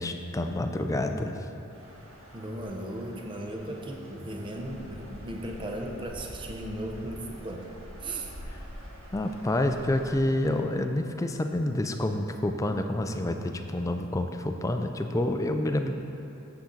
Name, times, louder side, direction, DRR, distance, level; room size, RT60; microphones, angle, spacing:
voice 1, 0.0-1.5 9.1-15.9, left 1 dB, 15° left, 6 dB, 0.3 m, -28 dB
sound 1, 1.7-10.6, equal, 80° right, 1.7 m, -46 dB
voice 2, 2.3-7.7 8.0-8.3, right 1 dB, 25° right, 2 dB, 0.6 m, -36 dB
8.7 x 7.0 x 3.9 m, 2.8 s
head